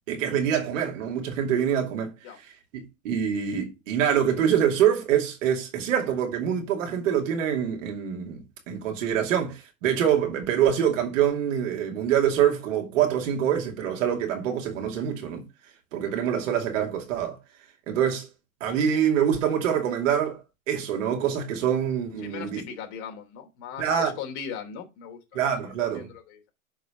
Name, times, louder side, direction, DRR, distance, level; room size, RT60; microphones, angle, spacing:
voice 1, 0.1-2.1 2.7-15.4 15.9-17.4 17.9-18.3 18.6-22.6 23.8-24.1 25.3-26.1, right 9 dB, 60° right, 2.6 m, -25 dB
voice 2, 22.2-25.2 25.6-26.5, left 8 dB, 50° left, 3.1 m, -39 dB
6.6 x 5.2 x 5.1 m
hypercardioid pair, 105°, 43 cm